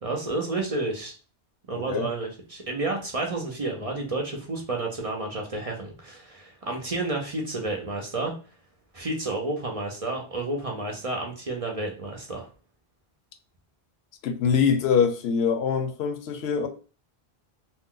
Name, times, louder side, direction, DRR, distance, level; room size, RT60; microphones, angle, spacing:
voice 1, 0.0-1.1 1.7-8.3 8.9-12.5, right 2 dB, 40° right, 0.6 m, -30 dB
voice 2, 1.7-2.1 14.2-16.7, left 6 dB, 80° left, 0.8 m, -24 dB
2.6 x 2.1 x 3.6 m
omnidirectional pair, 1.1 m